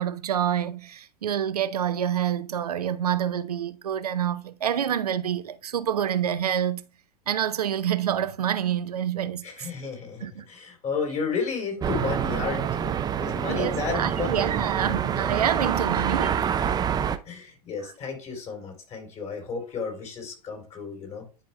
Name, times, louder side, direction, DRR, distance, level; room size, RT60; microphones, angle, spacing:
voice 1, 0.0-6.8 7.3-9.7 10.2-10.4 13.5-16.5 17.8-17.9, right 9 dB, 80° right, 0.6 m, -27 dB
voice 2, 9.4-14.5 14.7-15.0 16.7-16.9 17.3-21.3, left 5 dB, 40° left, 3.7 m, -33 dB
sound 1, 11.8-17.2, right 8 dB, 20° right, 0.5 m, -26 dB
10.0 x 5.2 x 2.2 m
hypercardioid pair, 95°, 19 cm